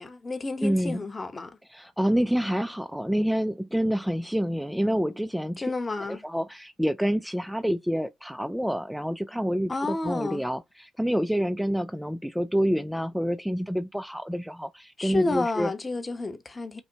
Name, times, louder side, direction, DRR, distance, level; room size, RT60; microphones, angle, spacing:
voice 1, 0.0-1.6 5.6-6.2 9.7-10.4 15.0-16.8, left 3 dB, 25° left, 0.8 m, -30 dB
voice 2, 0.6-1.0 1.7-5.7 6.0-15.7, equal, ahead, 0.3 m, -27 dB
5.5 x 2.2 x 2.8 m
cardioid pair, 90°, 0 cm